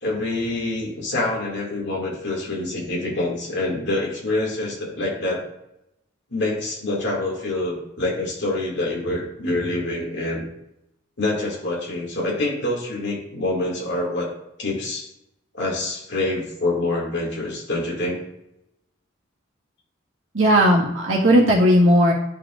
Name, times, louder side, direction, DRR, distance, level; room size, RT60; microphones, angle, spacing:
voice 1, 0.0-5.4 6.3-10.4 11.2-14.3 14.6-15.1 15.5-18.2, left 2 dB, 60° left, -3 dB, 2.2 m, -26 dB
voice 2, 20.3-22.1, equal, 80° right, -4 dB, 1.7 m, -16 dB
10.5 x 4.8 x 2.5 m, 0.83 s
head